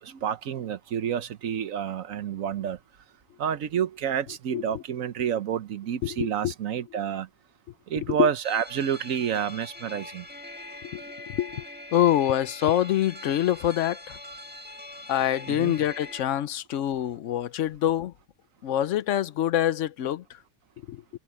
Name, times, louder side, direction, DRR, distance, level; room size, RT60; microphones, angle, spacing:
voice 1, 0.0-2.8 3.4-7.3 7.9-10.2 15.5-15.7, right 8 dB, 65° right, 1.2 m, -29 dB
voice 2, 4.5-4.8 6.0-6.5 8.0-8.3 10.8-11.0 11.3-11.7 11.9-14.2 15.1-18.1 18.6-20.4 20.9-21.0, left 11 dB, 65° left, 0.9 m, -25 dB
sound 1, 8.4-16.2, left 1 dB, 5° right, 1.5 m, -43 dB
omnidirectional pair, 1.6 m